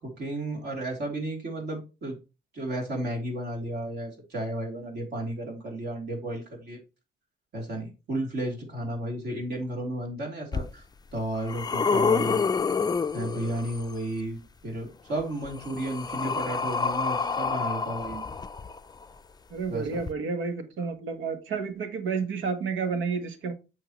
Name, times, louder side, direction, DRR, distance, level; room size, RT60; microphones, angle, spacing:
voice 1, 0.0-2.2 2.5-6.8 7.5-10.8 11.1-12.4 13.1-18.2 19.7-20.0, right 1 dB, 55° right, 3.2 m, -33 dB
sound 1, 10.5-10.6 11.2-13.9 15.1-19.0 20.0-20.1, left 5 dB, 20° left, 0.5 m, -28 dB
voice 2, 19.5-23.5, right 5 dB, 75° right, 1.4 m, -30 dB
7.8 x 5.8 x 3.1 m
cardioid pair, 90°, 20 cm